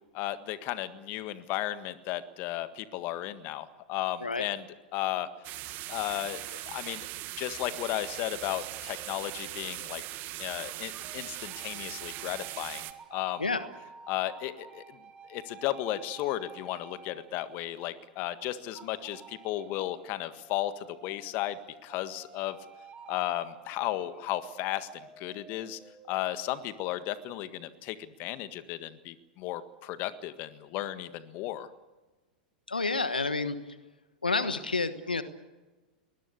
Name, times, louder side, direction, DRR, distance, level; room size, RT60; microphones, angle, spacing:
voice 1, 0.1-4.6 4.9-5.3 5.9-10.0 10.4-13.4 14.1-14.8 15.3-22.6 23.1-24.9 25.2-25.8 26.1-31.7, left 14 dB, 45° left, 12 dB, 1.6 m, -34 dB
sound 1, 5.4-12.9, right 17 dB, 45° right, 1.7 m, -40 dB
sound 2, 8.9-10.4 10.9-18.0 18.7-26.2, right 5 dB, 20° right, 4.4 m, -52 dB
voice 2, 32.7-33.6 34.2-35.2, left 3 dB, 90° left, 12 dB, 1.3 m, -29 dB
22.5 x 20.5 x 8.4 m, 1.2 s
figure-of-eight pair, 95°, 5 cm